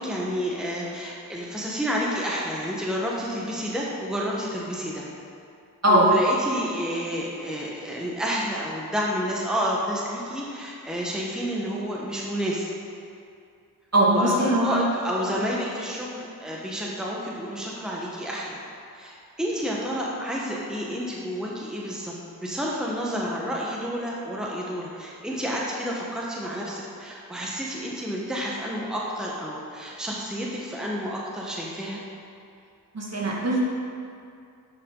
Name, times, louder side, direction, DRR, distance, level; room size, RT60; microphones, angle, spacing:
voice 1, 0.0-5.1 5.9-12.7 14.0-18.6 18.9-32.0, equal, ahead, -4 dB, 1.2 m, -30 dB
voice 2, 13.9-14.8 32.9-33.6, right 1 dB, 45° right, -4 dB, 1.9 m, -20 dB
10.5 x 5.7 x 3.8 m, 2.4 s
cardioid pair, 70°, 36 cm